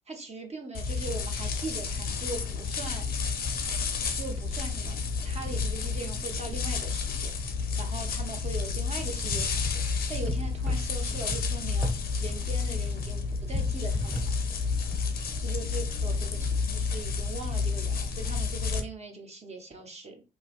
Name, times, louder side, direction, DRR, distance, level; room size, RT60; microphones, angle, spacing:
voice 1, 0.1-3.0 4.1-14.3 15.4-20.2, right 3 dB, 30° right, 3 dB, 0.8 m, -40 dB
sound 1, 0.7-18.8, left 5 dB, 50° left, 0.5 m, -30 dB
sound 2, 9.0-15.0, left 1 dB, 5° left, 0.9 m, -38 dB
2.6 x 2.1 x 2.4 m, 0.30 s
hypercardioid pair, 40°, 20 cm